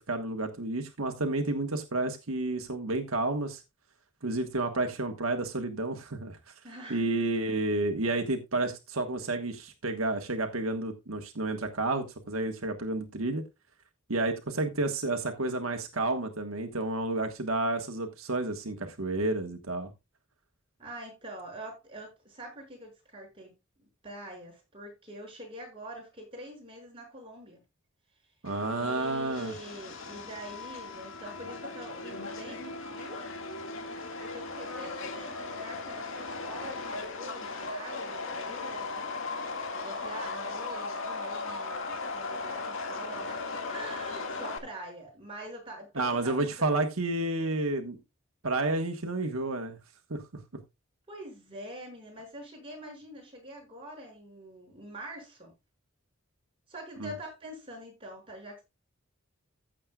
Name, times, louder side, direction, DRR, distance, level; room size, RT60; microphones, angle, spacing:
voice 1, 0.1-3.6 4.2-6.4 6.9-13.4 14.1-19.9 28.4-29.5 45.9-48.0 48.4-49.8 50.1-50.2 57.0-57.1, right 2 dB, 85° right, 1.5 m, -30 dB
voice 2, 6.6-7.0 20.8-27.6 28.7-33.2 34.2-39.1 39.7-46.8 51.1-55.5 56.7-58.6, right 1 dB, 25° right, 6.4 m, -45 dB
Subway metro underground, 28.4-44.6, left 3 dB, 70° left, 2.1 m, -37 dB
15.0 x 7.5 x 2.4 m
head